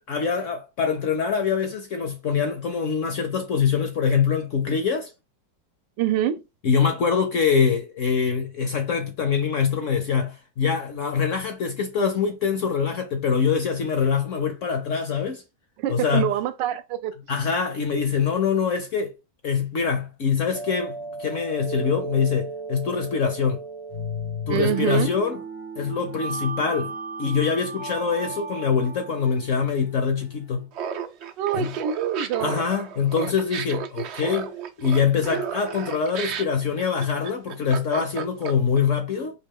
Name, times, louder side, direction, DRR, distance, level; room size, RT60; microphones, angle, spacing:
voice 1, 0.0-5.1 6.6-15.4 15.9-16.3 17.3-19.1 19.4-23.6 24.5-25.4 25.8-26.9 27.2-30.7 31.5-31.7 32.4-34.5 34.8-39.3, left 6 dB, 60° left, 0.8 m, -24 dB
voice 2, 6.0-6.4 15.8-17.1 24.5-25.1 31.4-32.6, right 11 dB, 80° right, 1.2 m, -25 dB
sound 1, 20.5-30.6, right 2 dB, 85° left, 2.3 m, -35 dB
Laughter, 30.7-38.8, right 7 dB, 65° right, 0.6 m, -33 dB
4.4 x 3.0 x 3.6 m
omnidirectional pair, 1.9 m